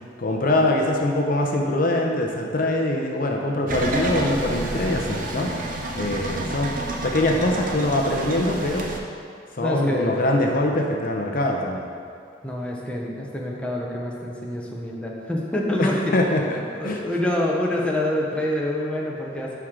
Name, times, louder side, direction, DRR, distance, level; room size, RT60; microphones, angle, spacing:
voice 1, 0.0-5.5 6.0-6.7 7.0-8.9 9.5-11.9 15.8-16.6 16.8-17.0, left 1 dB, 50° left, 1 dB, 0.7 m, -23 dB
sound 1, 3.7-9.0, right 1 dB, 45° right, 0.7 m, -29 dB
voice 2, 9.6-10.2 12.4-16.2 16.8-19.6, left 1 dB, 5° left, -3 dB, 0.8 m, -26 dB
11.0 x 4.6 x 3.7 m, 2.3 s
head